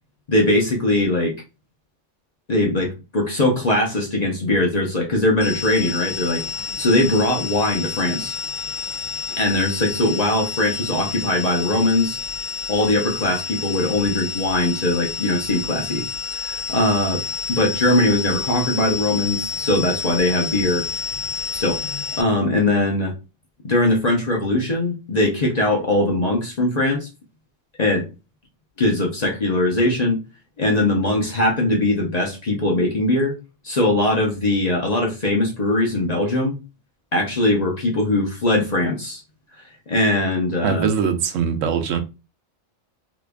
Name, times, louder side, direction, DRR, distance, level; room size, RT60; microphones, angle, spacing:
voice 1, 0.3-1.3 2.5-6.4 6.8-8.3 9.4-12.2 12.7-16.0 16.3-17.2 17.5-20.8 21.5-23.1 23.6-27.1 27.8-28.0 28.8-30.2 30.6-33.3 33.6-36.6 37.1-39.2 39.9-40.9, left 1 dB, 40° left, 0.7 m, -21 dB
sound 1, 5.4-22.2, left 4 dB, 75° left, 1.0 m, -29 dB
voice 2, 40.6-42.0, right 6 dB, 80° right, 1.0 m, -22 dB
2.9 x 2.4 x 3.4 m
omnidirectional pair, 1.3 m